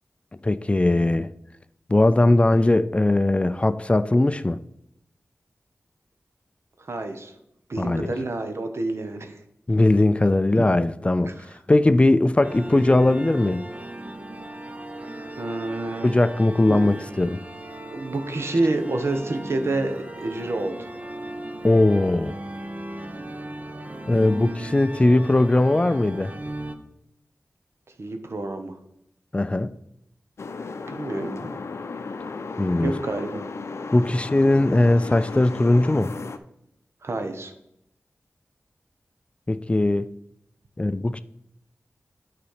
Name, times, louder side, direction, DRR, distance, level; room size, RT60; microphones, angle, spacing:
voice 1, 0.4-1.3 1.9-4.6 7.8-8.1 9.7-11.4 11.7-13.7 16.0-17.4 21.6-22.4 24.1-26.3 29.3-29.7 32.6-33.0 33.9-36.1 39.5-40.1 40.8-41.2, left 2 dB, 25° left, 0.3 m, -19 dB
voice 2, 6.8-7.3 7.7-9.4 11.2-11.4 15.4-16.1 16.7-16.9 17.9-20.9 28.0-28.8 30.9-31.5 32.8-33.4 37.0-37.5, right 2 dB, 65° right, 1.0 m, -28 dB
sound 1, 12.4-26.7, right 1 dB, 35° right, 0.8 m, -37 dB
sound 2, 30.4-36.4, left 4 dB, 75° left, 0.5 m, -35 dB
9.0 x 4.1 x 4.9 m
cardioid pair, 50°, 5 cm